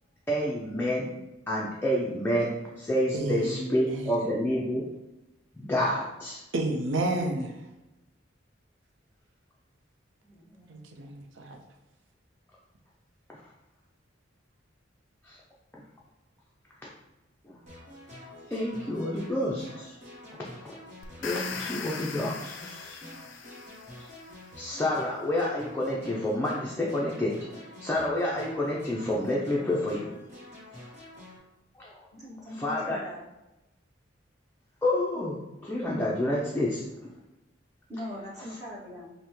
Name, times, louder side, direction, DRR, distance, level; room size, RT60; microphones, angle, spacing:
voice 1, 0.3-1.1 1.5-4.9 5.6-6.4 10.5-10.7 13.3-13.4 15.2-15.4 15.7-15.8 17.4-17.6 18.5-20.0 21.2-23.0 24.6-30.1 31.8-32.0 32.6-33.0 34.8-37.1, left 1 dB, 10° left, -5 dB, 0.4 m, -29 dB
voice 2, 3.1-4.2 6.5-7.6 10.7-11.6, right 2 dB, 75° right, 2 dB, 0.6 m, -31 dB
sound 1, 17.7-31.4, left 1 dB, 40° right, 1.2 m, -48 dB
sound 2, 21.0-24.2, left 5 dB, 75° left, 0.4 m, -39 dB
voice 3, 32.1-33.3 37.9-39.1, left 1 dB, 20° right, -9 dB, 1.4 m, -40 dB
5.4 x 2.1 x 3.0 m, 0.98 s
head